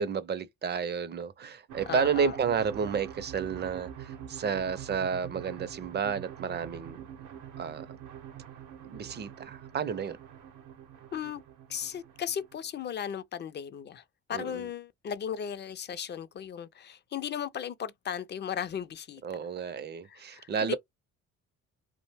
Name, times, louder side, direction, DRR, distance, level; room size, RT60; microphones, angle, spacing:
voice 1, 0.0-7.0 7.6-7.9 8.8-10.2 14.3-14.7 19.2-20.8, right 6 dB, 35° right, 0.4 m, -31 dB
sound 1, 1.7-12.9, right 9 dB, 90° right, 0.7 m, -45 dB
voice 2, 1.9-2.4 11.1-11.4 11.7-14.0 14.3-19.2 20.0-20.8, left 8 dB, 35° left, 0.4 m, -36 dB
2.5 x 2.1 x 3.3 m
cardioid pair, 90°, 30 cm